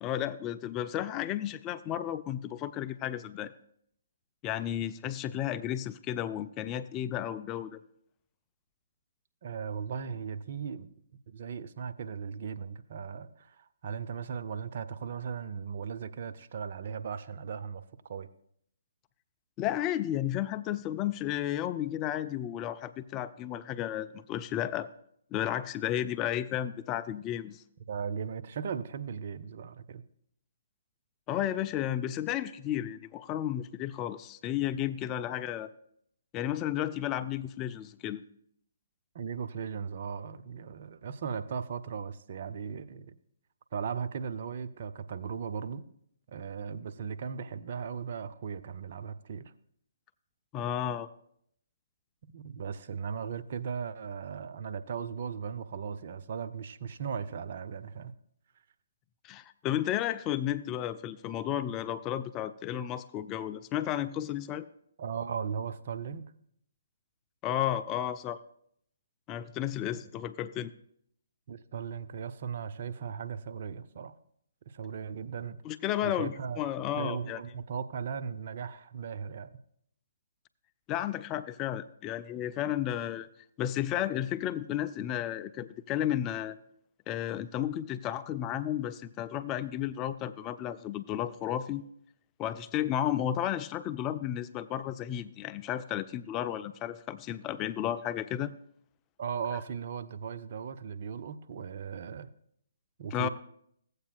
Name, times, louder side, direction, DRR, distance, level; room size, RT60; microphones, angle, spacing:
voice 1, 0.0-3.5 4.4-7.8 19.6-24.9 25.3-27.6 31.3-35.7 36.3-38.2 50.5-51.1 59.2-64.7 67.4-68.4 69.3-70.7 75.6-77.4 80.9-83.3 83.6-86.6 87.1-91.8 92.4-98.5 103.1-103.3, left 11 dB, 25° left, 12 dB, 0.3 m, -33 dB
voice 2, 9.4-11.0 11.3-18.3 27.9-30.0 39.1-43.2 43.7-45.9 46.3-49.4 52.2-58.1 65.0-66.3 71.5-74.1 74.7-75.6 76.0-76.6 77.0-79.5 99.2-102.3 103.0-103.3, right 6 dB, 50° right, 11 dB, 0.4 m, -37 dB
15.5 x 8.1 x 2.3 m, 0.69 s
figure-of-eight pair, 135°, 0 cm